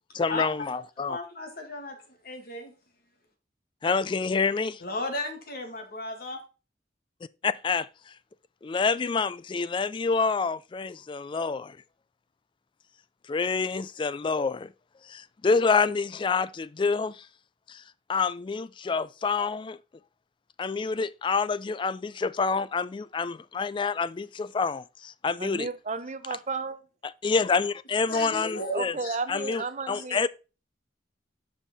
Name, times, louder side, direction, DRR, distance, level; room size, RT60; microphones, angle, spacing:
voice 1, 0.1-1.2 3.8-4.8 7.4-8.1 8.6-11.8 13.3-14.7 15.0-17.3 17.7-17.8 18.1-19.8 20.6-25.7 27.0-29.0 29.3-30.3, left 4 dB, 25° left, 0.3 m, -27 dB
voice 2, 1.1-2.7 4.8-6.4 28.1-29.2 29.9-30.0, left 1 dB, 55° left, 1.8 m, -35 dB
voice 3, 25.4-26.8 28.7-30.3, right 4 dB, 40° right, 0.7 m, -33 dB
7.3 x 5.4 x 4.1 m
head